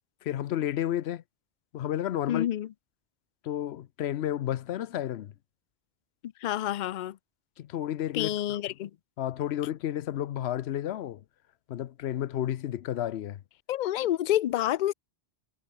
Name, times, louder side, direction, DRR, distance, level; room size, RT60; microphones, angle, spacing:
voice 1, 0.2-1.2 1.7-2.5 3.4-5.3 7.6-8.6 9.2-11.2 11.7-13.4, left 11 dB, 75° left, 0.9 m, -31 dB
voice 2, 2.3-2.7 6.4-7.2 8.1-8.9 13.7-14.9, left 13 dB, 55° left, 0.5 m, -28 dB
omnidirectional pair, 1.1 m